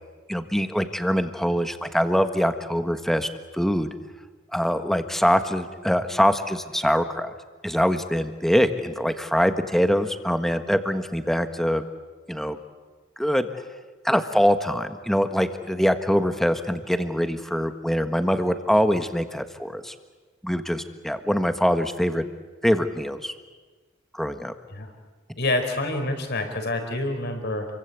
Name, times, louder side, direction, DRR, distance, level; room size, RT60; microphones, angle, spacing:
voice 1, 0.3-3.9 4.5-7.3 7.6-11.8 12.3-12.6 13.2-13.5 14.0-19.9 20.4-22.2 22.6-23.3 24.1-24.5, equal, ahead, 8 dB, 1.5 m, -23 dB
voice 2, 25.4-27.7, left 2 dB, 55° left, 6 dB, 4.7 m, -27 dB
29.0 x 24.0 x 8.5 m, 1.3 s
head